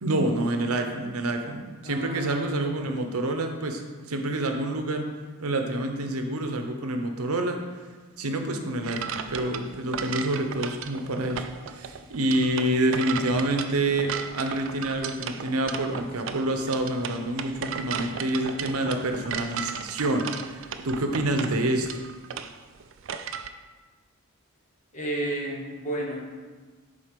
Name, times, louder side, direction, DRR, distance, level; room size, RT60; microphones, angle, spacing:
voice 1, 0.0-5.1 5.4-7.6 8.2-21.9, right 1 dB, 85° right, 5 dB, 0.8 m, -27 dB
voice 2, 1.8-2.5 24.9-26.2, right 1 dB, 35° left, -2 dB, 1.3 m, -32 dB
sound 1, 8.8-23.5, right 7 dB, 60° right, 0.4 m, -36 dB
7.2 x 4.2 x 5.2 m, 1.4 s
head